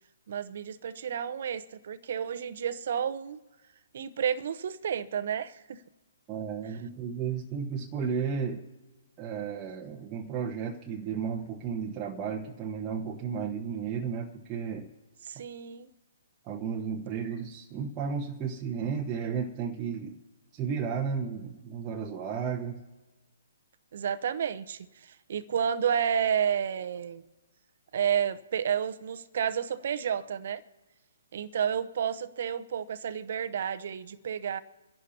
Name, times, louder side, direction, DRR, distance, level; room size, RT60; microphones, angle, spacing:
voice 1, 0.3-3.4 3.9-5.8 15.2-15.9 23.9-24.9 25.3-27.2 27.9-30.6 31.3-34.6, right 8 dB, 60° right, 13 dB, 0.9 m, -31 dB
voice 2, 6.3-8.6 9.2-14.9 16.4-20.2 20.5-22.8, right 6 dB, 25° right, -1 dB, 1.1 m, -33 dB
27.5 x 11.0 x 2.9 m, 1.2 s
hypercardioid pair, 140°, 0 cm